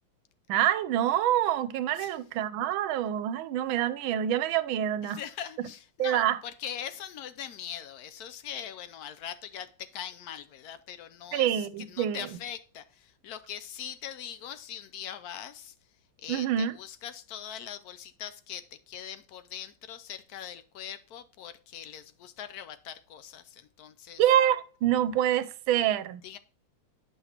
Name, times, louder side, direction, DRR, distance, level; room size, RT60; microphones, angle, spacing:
voice 1, 0.5-5.2 6.0-6.4 11.3-12.3 16.3-16.7 24.2-26.2, right 11 dB, 85° right, 1.4 m, -26 dB
voice 2, 5.0-15.7 16.2-24.2 26.2-26.4, left 9 dB, 75° left, 0.8 m, -41 dB
9.4 x 5.8 x 2.9 m
omnidirectional pair, 2.2 m